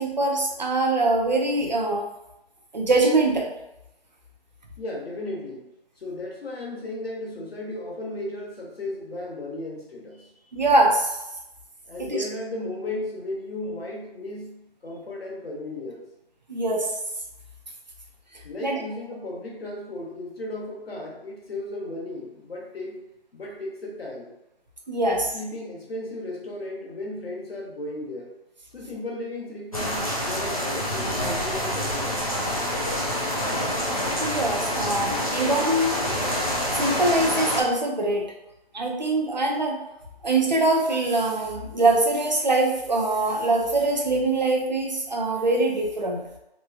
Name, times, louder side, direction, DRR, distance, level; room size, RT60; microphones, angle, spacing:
voice 1, 0.0-2.1 2.7-3.5 10.5-11.2 12.0-12.2 16.5-16.9 18.6-18.8 24.9-25.3 34.2-36.1 36.7-38.3 38.7-39.8 40.2-46.2, right 2 dB, 45° right, 1 dB, 0.5 m, -23 dB
voice 2, 4.8-5.7 6.0-10.3 11.9-16.1 18.4-23.0 23.3-24.3 25.0-28.3 28.7-32.2, left 1 dB, 70° left, -2 dB, 0.9 m, -35 dB
sound 1, 29.7-37.6, equal, 35° left, 0.4 m, -27 dB
3.0 x 2.3 x 2.3 m, 0.89 s
figure-of-eight pair, 170°, 31 cm